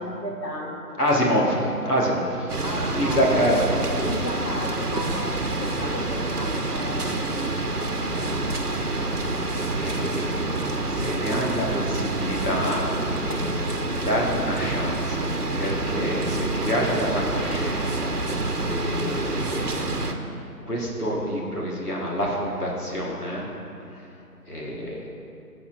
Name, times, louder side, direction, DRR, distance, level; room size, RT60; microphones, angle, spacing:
voice 1, 0.0-1.4 2.6-3.4 3.9-9.1 10.5-11.0, left 1 dB, 85° left, -2 dB, 1.6 m, -35 dB
voice 2, 1.0-2.5 2.9-3.8 9.8-10.6 10.9-12.9 13.2-18.1 18.6-19.9 20.7-23.5 23.9-24.0 24.5-25.0, equal, 65° left, -3 dB, 1.7 m, -27 dB
sound 1, 2.5-20.1, right 2 dB, 70° right, 0.9 m, -27 dB
17.0 x 7.0 x 2.6 m, 2.7 s
figure-of-eight pair, 180°, 48 cm